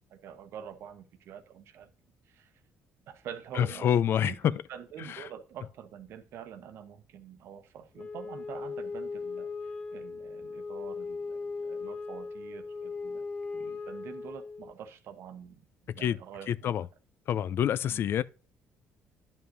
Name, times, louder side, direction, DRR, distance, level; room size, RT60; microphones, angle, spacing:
voice 1, 0.1-1.9 2.3-2.5 3.1-4.0 4.2-13.2 13.5-15.7 15.9-16.7 17.9-18.1, right 8 dB, 70° right, 0.9 m, -46 dB
voice 2, 3.6-4.5 5.1-5.2 16.0-16.2 16.5-16.9 17.3-18.2, left 10 dB, 60° left, 0.4 m, -27 dB
Wind instrument woodwind instrument, 8.0-14.8, left 4 dB, 30° left, 1.4 m, -38 dB
11.0 x 5.3 x 2.6 m
supercardioid pair, 75°, 4 cm